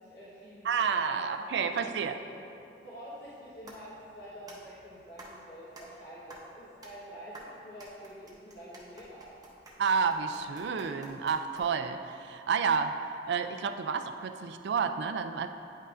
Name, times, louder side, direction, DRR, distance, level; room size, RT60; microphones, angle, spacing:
voice 1, 0.0-0.8 1.1-1.2 1.6-1.7 2.0-2.3 2.8-9.4, equal, 65° left, -9 dB, 1.2 m, -47 dB
voice 2, 0.6-2.2 9.8-13.0 13.3-15.5, right 6 dB, 65° right, 8 dB, 0.3 m, -30 dB
sound 1, 3.2-12.0, right 1 dB, 20° right, 0.8 m, -52 dB
9.4 x 5.4 x 2.5 m, 2.9 s
head